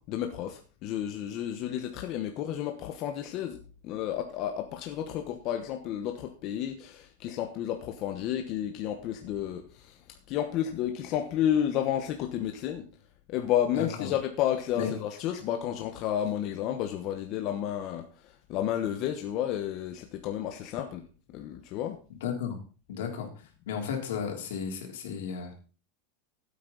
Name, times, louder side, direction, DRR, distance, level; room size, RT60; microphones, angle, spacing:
voice 1, 0.0-10.0 10.3-12.9 13.3-21.0 21.3-22.0, left 10 dB, 35° left, 5 dB, 1.1 m, -31 dB
voice 2, 13.7-14.1 14.8-14.9 22.2-22.6 22.9-23.3 23.7-25.6, left 7 dB, 80° left, 3 dB, 3.4 m, -33 dB
14.5 x 8.5 x 4.0 m, 0.36 s
supercardioid pair, 170°, 0 cm